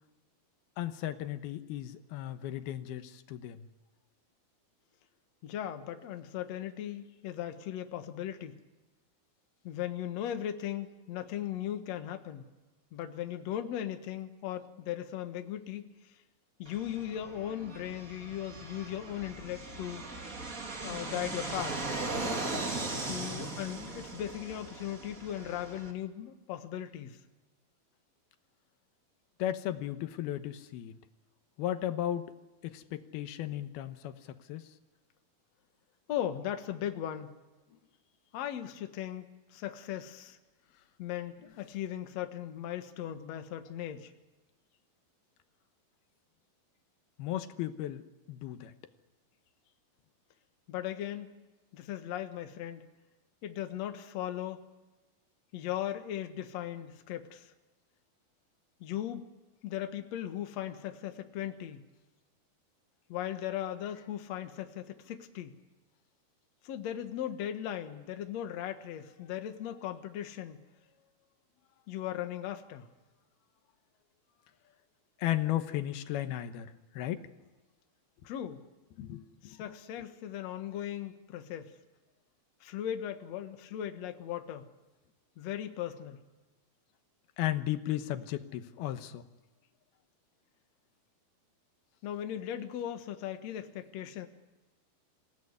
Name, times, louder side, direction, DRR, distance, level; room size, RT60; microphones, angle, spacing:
voice 1, 0.8-3.7 29.4-31.0 31.6-32.3 32.6-34.7 47.2-48.7 75.2-77.3 79.0-79.6 87.4-89.2, left 12 dB, 90° left, 9 dB, 3.1 m, -35 dB
voice 2, 5.4-8.6 9.6-12.5 12.9-16.2 16.6-20.0 20.8-21.9 22.1-22.4 23.1-27.2 36.1-37.3 37.7-37.8 38.3-40.4 41.0-44.1 50.7-51.3 51.7-52.9 53.4-54.6 55.5-57.5 58.8-59.2 59.6-61.8 63.1-65.6 66.6-70.6 71.9-72.9 78.2-78.6 79.4-81.7 82.6-84.7 85.4-86.2 92.0-94.3, left 11 dB, 55° left, 7 dB, 2.2 m, -38 dB
Fixed-wing aircraft airplane, 16.6-25.9, right 3 dB, 25° right, 2.4 m, -39 dB
27.0 x 17.0 x 9.7 m, 1.2 s
omnidirectional pair, 4.3 m